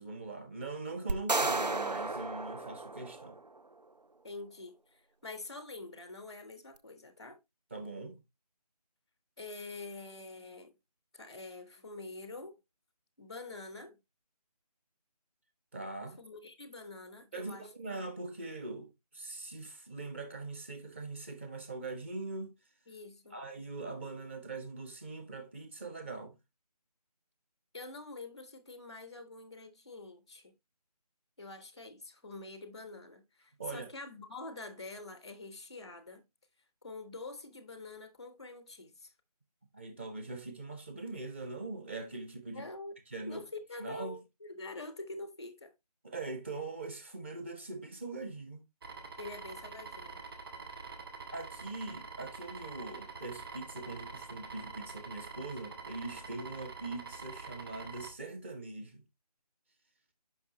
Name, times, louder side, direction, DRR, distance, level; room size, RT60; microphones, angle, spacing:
voice 1, 0.0-3.4 7.7-8.2 15.7-16.2 17.3-18.9 19.1-22.5 23.3-26.4 33.6-33.9 39.7-42.7 43.1-43.4 43.8-44.2 46.0-48.6 51.3-59.0, right 3 dB, 20° right, 0.9 m, -42 dB
sound 1, 1.1-3.5, right 2 dB, 90° right, 0.8 m, -33 dB
voice 2, 4.2-7.4 9.4-10.7 11.1-12.6 13.2-14.0 16.2-17.7 22.9-23.4 27.7-30.6 31.4-36.3 36.8-39.1 42.5-42.9 43.3-45.7 49.2-50.2, left 2 dB, 10° left, 0.6 m, -46 dB
sound 2, 48.8-58.1, right 4 dB, 35° right, 1.7 m, -46 dB
8.4 x 5.7 x 2.9 m
figure-of-eight pair, 160°, 21 cm